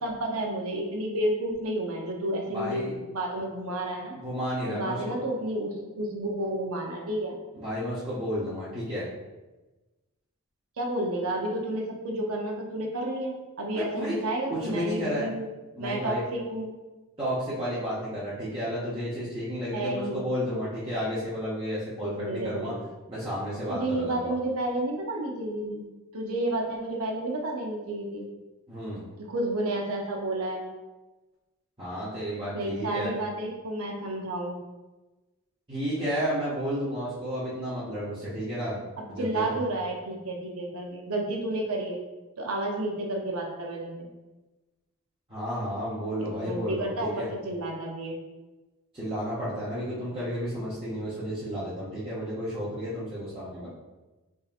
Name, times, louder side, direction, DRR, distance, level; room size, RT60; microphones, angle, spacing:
voice 1, 0.0-4.2 4.7-7.4 10.8-15.5 15.8-16.7 19.7-20.3 22.0-22.8 23.7-25.8 26.1-28.3 29.2-30.7 32.5-34.6 39.0-42.0 42.4-44.1 46.4-48.2, right 1 dB, 80° right, 1 dB, 0.7 m, -31 dB
voice 2, 2.5-2.9 4.1-5.2 7.6-9.1 13.7-14.1 14.5-15.3 15.8-16.2 17.2-22.7 23.1-24.3 28.7-29.0 31.8-33.1 35.7-39.6 45.3-47.3 48.9-53.7, equal, 25° right, -11 dB, 0.9 m, -32 dB
4.1 x 3.6 x 2.5 m, 1.1 s
head